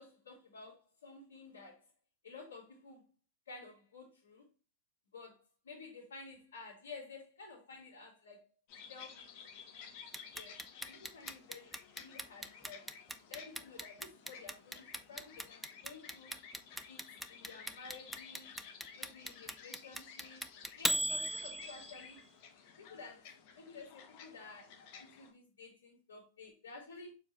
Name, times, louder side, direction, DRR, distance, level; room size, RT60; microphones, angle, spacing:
voice 1, 0.0-1.9 2.2-3.1 3.4-4.5 5.1-8.4 8.9-9.3 10.3-13.0 13.3-16.4 16.8-18.6 18.9-20.5 20.8-22.2 22.8-27.2, left 4 dB, 70° left, 2.8 m, -52 dB
sound 1, 8.7-25.3, left 6 dB, 45° left, 1.5 m, -54 dB
Clock, 10.1-22.1, right 1 dB, 5° right, 0.7 m, -38 dB
6.9 x 4.7 x 3.3 m
figure-of-eight pair, 90°, 0 cm